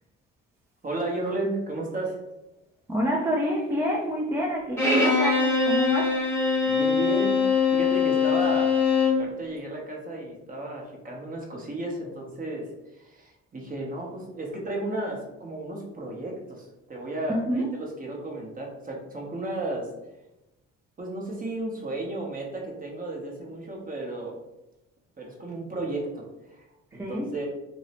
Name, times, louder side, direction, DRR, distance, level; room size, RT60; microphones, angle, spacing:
voice 1, 0.8-2.2 6.6-8.7 9.2-19.9 21.0-24.4 25.2-26.7 26.9-27.5, right 2 dB, 30° right, -1 dB, 0.8 m, -33 dB
voice 2, 2.9-6.2 17.3-17.7 26.9-27.3, equal, 10° right, -3 dB, 0.3 m, -27 dB
Bowed string instrument, 4.8-9.3, left 5 dB, 10° left, 0.9 m, -22 dB
2.6 x 2.0 x 2.8 m, 0.94 s
cardioid pair, 90°, 30 cm